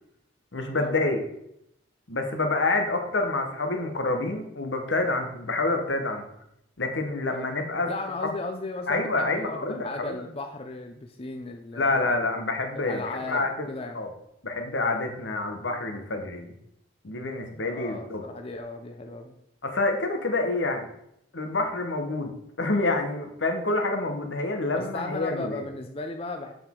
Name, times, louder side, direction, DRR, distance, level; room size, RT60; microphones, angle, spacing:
voice 1, 0.5-1.2 2.1-6.2 6.8-7.9 8.2-8.3 8.9-10.2 11.7-13.7 13.9-14.1 14.4-16.5 17.0-18.2 19.6-20.9 21.3-22.3 22.6-25.7, left 2 dB, 75° left, 4 dB, 1.2 m, -27 dB
voice 2, 7.9-12.3 12.7-14.0 17.7-19.3 24.7-26.5, left 2 dB, 30° left, 4 dB, 0.5 m, -36 dB
6.9 x 6.0 x 3.7 m, 0.77 s
head